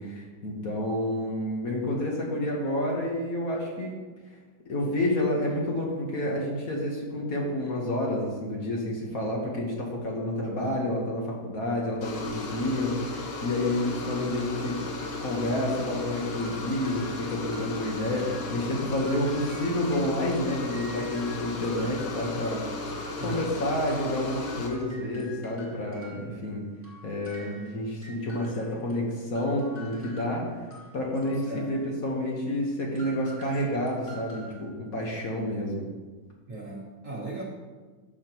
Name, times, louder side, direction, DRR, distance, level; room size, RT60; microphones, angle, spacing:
voice 1, 0.0-3.9 4.7-14.8 15.2-22.6 23.2-26.6 27.0-30.5 30.9-35.9, left 1 dB, 50° left, -2 dB, 1.6 m, -29 dB
sound 1, 12.0-24.7, left 3 dB, 70° left, 1.7 m, -35 dB
sound 2, 16.4-24.0 24.3-31.9 32.9-34.6, equal, 25° left, 2.1 m, -49 dB
voice 2, 36.5-37.4, right 2 dB, 45° right, -5 dB, 2.0 m, -37 dB
13.5 x 5.8 x 3.0 m, 1.4 s
omnidirectional pair, 2.0 m